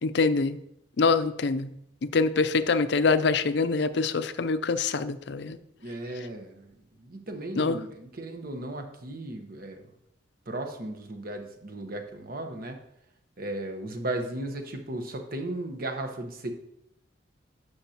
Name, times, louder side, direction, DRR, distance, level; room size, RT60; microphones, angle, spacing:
voice 1, 0.0-0.6 1.0-1.7 2.0-5.6 7.6-7.8, left 4 dB, 65° left, 12 dB, 0.5 m, -25 dB
voice 2, 5.8-9.9 10.5-12.8 13.4-16.5, right 1 dB, 50° right, 5 dB, 1.1 m, -36 dB
11.0 x 6.5 x 2.9 m, 0.77 s
head